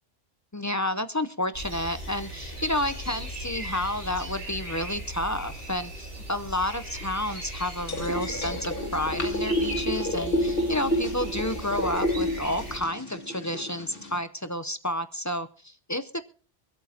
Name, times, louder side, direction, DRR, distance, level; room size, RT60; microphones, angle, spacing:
voice 1, 0.5-16.2, left 1 dB, 25° left, 11 dB, 0.4 m, -30 dB
sound 1, 1.5-12.8, right 1 dB, 75° right, 4.6 m, -38 dB
sound 2, 7.9-14.2, equal, 55° left, 1.9 m, -30 dB
24.5 x 8.3 x 2.7 m, 0.43 s
omnidirectional pair, 1.1 m